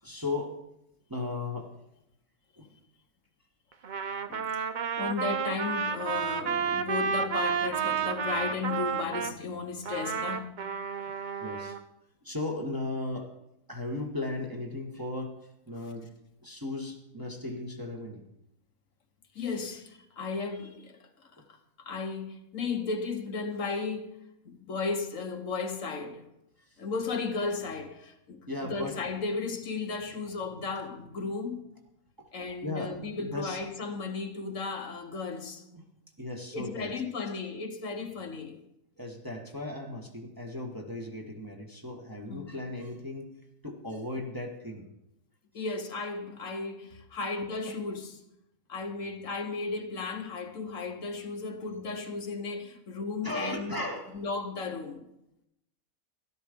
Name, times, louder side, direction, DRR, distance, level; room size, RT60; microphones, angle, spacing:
voice 1, 0.0-0.6 1.1-1.7 2.6-2.7 11.4-11.8 12.2-13.3 13.7-15.3 15.7-16.1 16.4-18.2 26.6-26.8 28.5-28.9 32.2-32.3 32.6-33.6 35.7-35.8 36.2-36.9 39.0-43.3 43.6-44.9 45.6-45.7 53.2-54.2, left 2 dB, 15° right, 1.4 m, -36 dB
Trumpet, 3.8-9.4 9.9-11.8, right 6 dB, 50° right, 0.6 m, -31 dB
voice 2, 5.0-10.5 19.3-21.1 21.8-24.1 24.4-26.2 26.8-31.6 32.3-35.6 36.5-38.6 42.3-42.5 45.5-48.2 48.7-53.8 54.1-55.1, left 4 dB, 65° left, 1.4 m, -35 dB
13.0 x 12.0 x 5.1 m
omnidirectional pair, 1.5 m